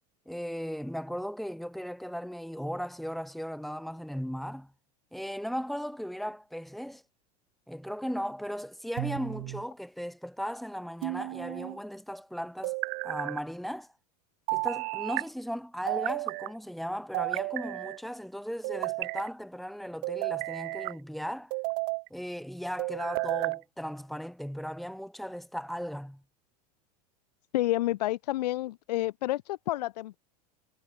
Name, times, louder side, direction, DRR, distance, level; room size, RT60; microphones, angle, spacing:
voice 1, 0.3-4.7 5.1-7.0 7.7-13.9 14.5-21.5 22.1-26.2, equal, ahead, 4.2 m, -37 dB
sound 1, 9.0-9.7 11.0-11.8 12.6-13.4 14.5-15.3 15.9-16.5 17.1-18.0 18.6-19.3 20.0-21.0 21.5-22.1 22.8-23.6, right 40 dB or more, 55° right, 1.9 m, -32 dB
voice 2, 27.5-30.2, left 16 dB, 80° left, 4.6 m, -29 dB
supercardioid pair, 140°, 20 cm